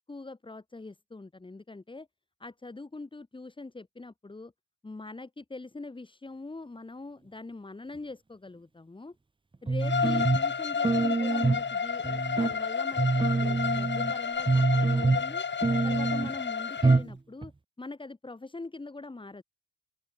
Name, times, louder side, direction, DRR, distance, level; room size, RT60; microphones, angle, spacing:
voice 1, 0.1-2.1 2.4-4.5 4.8-9.2 9.6-15.4 15.8-17.5 17.8-19.4, left 3 dB, 15° left, 6.7 m, -43 dB
sound 1, 9.7-10.5 10.8-11.7 12.0-12.5 13.0-14.1 14.5-15.3 15.6-16.3 16.8-17.2 17.4-17.5, right 3 dB, 15° right, 1.9 m, -25 dB
Bowed string instrument, 9.8-17.0, left 6 dB, 30° left, 7.1 m, -31 dB
open air
cardioid pair, 120°, 37 cm